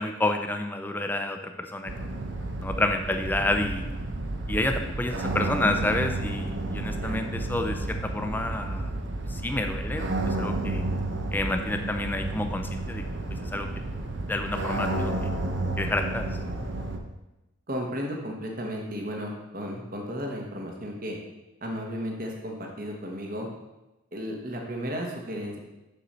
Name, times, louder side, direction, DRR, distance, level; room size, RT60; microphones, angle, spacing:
voice 1, 0.0-2.2 2.6-3.8 4.5-8.9 9.3-10.8 11.3-13.0 13.4-13.7 14.3-15.3 15.8-16.3, left 2 dB, 10° left, 5 dB, 0.5 m, -29 dB
sound 1, 1.9-17.0, right 2 dB, 65° right, 0.8 m, -31 dB
voice 2, 17.7-21.2 21.6-23.5 24.1-25.6, equal, 45° right, 0 dB, 1.2 m, -34 dB
6.8 x 6.4 x 4.2 m, 0.99 s
head